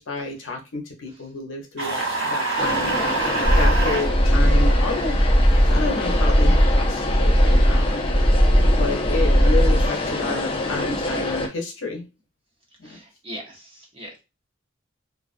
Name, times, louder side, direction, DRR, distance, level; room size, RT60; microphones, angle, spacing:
voice 1, 0.0-2.9 3.5-5.2 5.5-8.0 8.8-12.1 12.8-13.0, left 3 dB, 65° left, 1 dB, 0.7 m, -30 dB
sound 1, 1.8-4.1, right 3 dB, 75° right, 1.1 m, -25 dB
sound 2, 2.6-11.5, left 2 dB, 25° left, 0.4 m, -27 dB
sound 3, 3.4-9.9, equal, 10° left, 1.1 m, -18 dB
voice 2, 12.8-14.2, equal, 25° right, -1 dB, 0.8 m, -41 dB
2.3 x 2.3 x 2.5 m, 0.27 s
head